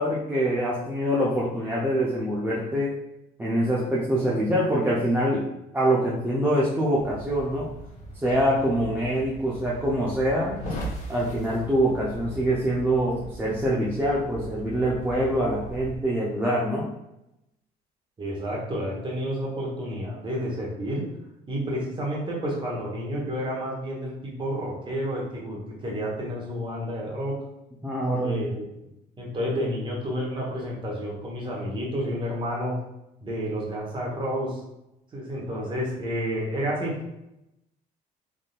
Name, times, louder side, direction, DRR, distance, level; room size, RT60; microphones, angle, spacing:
voice 1, 0.0-2.9 3.4-5.4 5.7-7.7 8.2-10.6 11.1-16.9 27.8-28.4, right 1 dB, 10° right, -6 dB, 0.6 m, -24 dB
sound 1, 7.0-16.0, right 1 dB, 45° left, 0.9 m, -39 dB
voice 2, 18.2-21.0 21.5-27.4 28.2-28.6 29.2-32.7 33.2-34.6 35.1-37.2, equal, 30° right, -4 dB, 1.1 m, -30 dB
3.6 x 2.6 x 2.4 m, 0.88 s
cardioid pair, 110°, 17 cm